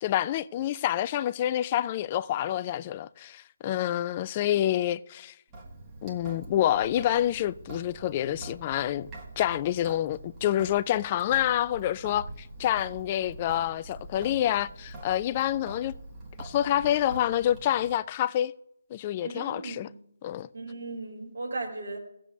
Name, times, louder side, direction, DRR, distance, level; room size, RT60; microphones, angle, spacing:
voice 1, 0.0-5.3 6.0-9.1 9.4-15.9 16.4-18.5 18.9-19.9 20.2-20.5, left 12 dB, 25° left, 0.3 m, -27 dB
Sink (filling or washing) / Drip, 5.5-18.0, right 2 dB, 20° right, 1.7 m, -45 dB
voice 2, 19.2-20.0 20.5-22.0, right 3 dB, 65° right, 3.5 m, -37 dB
18.0 x 7.6 x 2.8 m
figure-of-eight pair, 145°, 0 cm